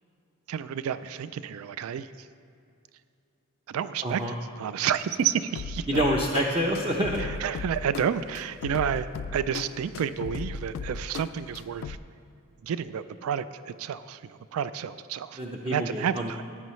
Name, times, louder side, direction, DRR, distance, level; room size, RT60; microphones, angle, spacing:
voice 1, 0.5-2.3 3.7-6.0 7.2-12.0 12.6-15.4 15.7-16.4, right 8 dB, 65° right, 14 dB, 0.3 m, -30 dB
voice 2, 4.0-4.3 5.9-7.4 15.4-16.4, equal, 25° right, -1 dB, 0.6 m, -27 dB
sound 1, 5.6-12.0, left 5 dB, 60° left, 0.3 m, -37 dB
14.5 x 9.5 x 3.1 m, 2.6 s
head